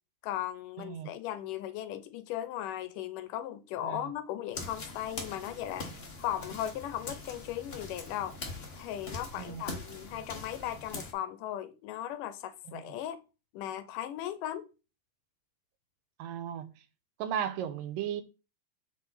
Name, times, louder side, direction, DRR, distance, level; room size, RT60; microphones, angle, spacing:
voice 1, 0.2-5.9 6.2-8.4 8.7-13.2 13.5-14.7, left 12 dB, 80° left, 2.2 m, -37 dB
voice 2, 0.8-1.1 3.8-4.1 9.4-9.6 12.7-12.8 16.2-16.7 17.2-18.2, right 9 dB, 85° right, 2.5 m, -35 dB
sound 1, 4.5-11.1, left 2 dB, 55° left, 0.6 m, -42 dB
7.4 x 5.4 x 4.2 m
omnidirectional pair, 3.9 m